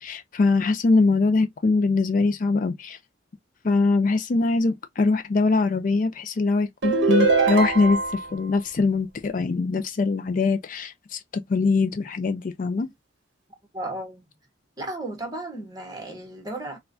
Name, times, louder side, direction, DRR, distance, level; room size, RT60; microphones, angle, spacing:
voice 1, 0.0-3.0 3.6-8.0 8.3-12.9, left 3 dB, 45° left, 0.4 m, -22 dB
sound 1, 6.8-8.3, right 4 dB, 60° right, 0.7 m, -21 dB
voice 2, 13.7-14.3 14.8-16.8, right 1 dB, 20° right, 1.1 m, -34 dB
4.2 x 2.2 x 2.5 m
head